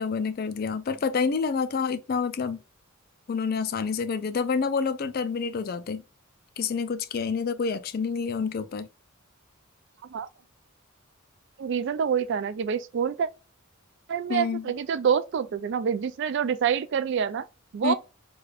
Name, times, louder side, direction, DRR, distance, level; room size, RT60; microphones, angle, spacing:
voice 1, 0.0-2.6 3.3-6.0 6.6-8.9 14.3-14.6 17.8-17.9, left 5 dB, 45° left, 0.3 m, -28 dB
voice 2, 11.6-13.3 14.1-17.4 17.7-17.9, right 7 dB, 55° right, 0.3 m, -26 dB
4.9 x 2.3 x 2.3 m
head